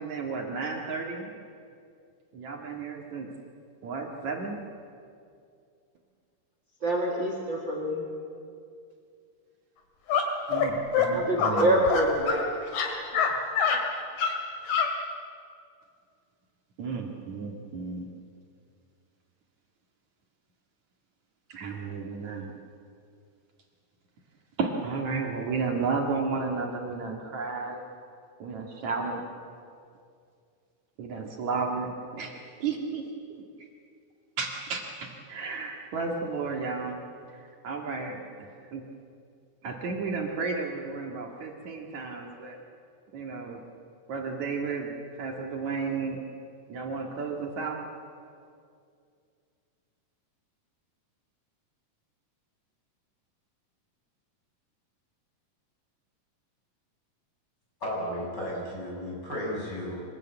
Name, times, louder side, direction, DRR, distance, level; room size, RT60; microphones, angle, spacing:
voice 1, 0.0-1.3 2.3-3.3 3.8-4.6 10.5-11.7 16.8-18.1 21.5-22.5 24.6-27.8 28.4-29.2 31.0-33.0 33.4-33.5 34.4-37.0 37.3-38.8 39.6-42.6 43.1-43.6 44.1-44.9 45.2-46.2 46.7-47.8, right 4 dB, 60° right, 1 dB, 3.1 m, -33 dB
voice 2, 6.8-8.1 11.1-12.5, right 1 dB, 40° right, 0 dB, 2.7 m, -26 dB
sound 1, 10.1-10.2 10.5-10.7 10.9-11.1 11.4-12.4 12.7-13.3 13.6-13.8 14.2-14.3 14.7-14.9, left 7 dB, 85° left, 4.2 m, -25 dB
voice 3, 57.8-60.0, equal, 30° left, -3 dB, 7.5 m, -34 dB
25.0 x 20.5 x 9.1 m, 2.3 s
omnidirectional pair, 3.8 m